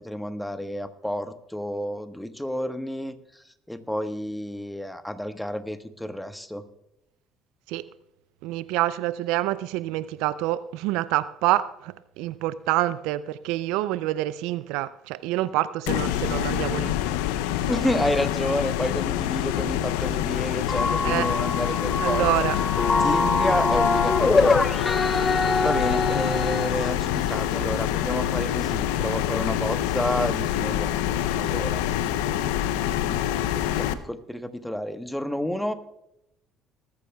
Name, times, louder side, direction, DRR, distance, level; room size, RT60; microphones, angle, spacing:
voice 1, 0.0-6.7 17.7-22.3 23.0-24.6 25.6-35.7, left 1 dB, 5° left, 1.3 m, -30 dB
voice 2, 8.4-16.9 17.3-17.4 21.0-21.3 22.0-22.6, right 15 dB, 70° right, 0.4 m, -27 dB
sound 1, 15.9-33.9, left 12 dB, 75° left, 0.6 m, -26 dB
sound 2, 20.7-26.7, left 3 dB, 30° left, 0.5 m, -24 dB
20.0 x 13.5 x 2.3 m
hypercardioid pair, 55°, 0 cm